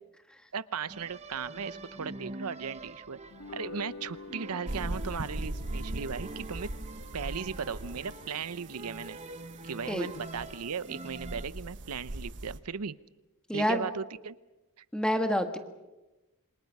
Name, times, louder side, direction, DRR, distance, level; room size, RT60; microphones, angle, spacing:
voice 1, 0.5-3.2 3.5-6.7 7.1-9.2 9.6-12.9 13.5-14.4 14.8-14.9, right 6 dB, 80° right, 15 dB, 0.8 m, -37 dB
sound 1, 0.9-11.5, right 2 dB, 30° right, 1.1 m, -45 dB
sound 2, 3.3-9.8, left 4 dB, 80° left, 1.7 m, -49 dB
sound 3, 4.7-12.6, right 1 dB, 55° right, 1.1 m, -40 dB
voice 2, 13.5-13.9 14.9-15.6, equal, 5° left, 6 dB, 1.7 m, -27 dB
27.5 x 25.5 x 5.5 m, 1.1 s
head